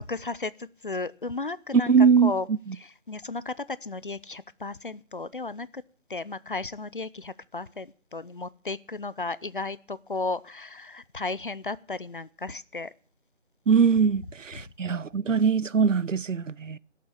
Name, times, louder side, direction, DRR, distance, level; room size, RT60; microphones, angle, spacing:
voice 1, 0.0-2.5 2.8-5.8 6.1-12.9 14.6-14.7, left 3 dB, 45° left, 0.5 m, -34 dB
voice 2, 1.9-2.3 13.7-16.8, right 6 dB, 85° right, 0.7 m, -22 dB
12.5 x 7.4 x 10.0 m
figure-of-eight pair, 155°, 37 cm